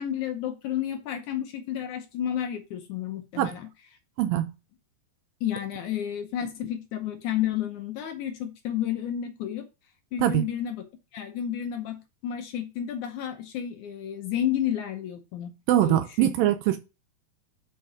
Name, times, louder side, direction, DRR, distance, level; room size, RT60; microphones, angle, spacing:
voice 1, 0.0-3.7 5.4-9.7 10.1-10.8 11.1-15.5 15.8-16.4, left 10 dB, 75° left, 1.9 m, -31 dB
voice 2, 15.7-16.8, right 13 dB, 80° right, 2.2 m, -22 dB
5.7 x 5.7 x 4.8 m
omnidirectional pair, 4.3 m